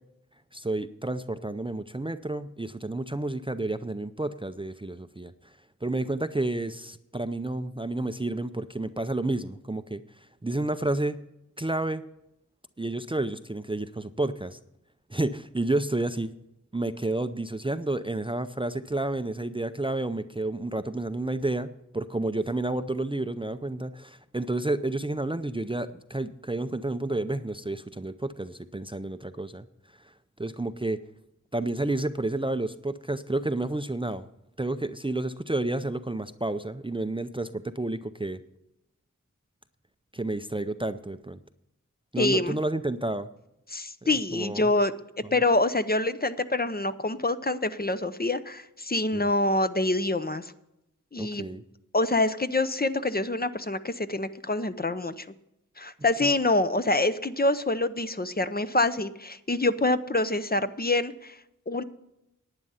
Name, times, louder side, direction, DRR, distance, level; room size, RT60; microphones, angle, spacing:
voice 1, 0.5-5.3 5.8-10.0 10.4-11.3 11.6-12.0 12.8-14.6 15.1-16.3 16.7-29.7 30.4-31.0 31.5-34.2 34.6-38.4 40.1-41.4 42.1-43.3 44.3-44.7 49.1-49.3 51.2-51.6 56.2-56.3, right 2 dB, 15° right, 12 dB, 0.5 m, -30 dB
voice 2, 42.2-42.6 43.7-44.9 45.3-50.5 51.1-51.5 51.9-55.2 55.8-61.4 61.7-61.8, left 2 dB, 30° left, 11 dB, 0.7 m, -26 dB
11.0 x 9.2 x 5.6 m, 0.86 s
wide cardioid pair, 50°, 31 cm